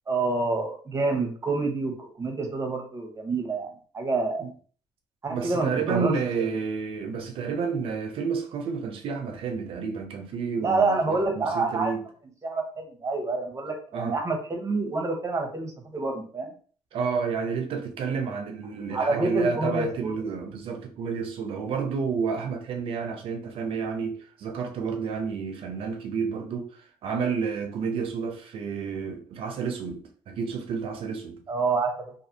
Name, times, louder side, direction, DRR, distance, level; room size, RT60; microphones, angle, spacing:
voice 1, 0.1-4.5 5.2-6.5 10.6-11.9 12.4-16.5 18.9-20.1 31.5-32.1, right 3 dB, 30° right, 1.0 m, -27 dB
voice 2, 5.3-12.0 13.9-14.2 16.9-26.7 27.0-31.4, right 5 dB, 70° right, 0.6 m, -30 dB
2.6 x 2.5 x 2.7 m
supercardioid pair, 70°, 10 cm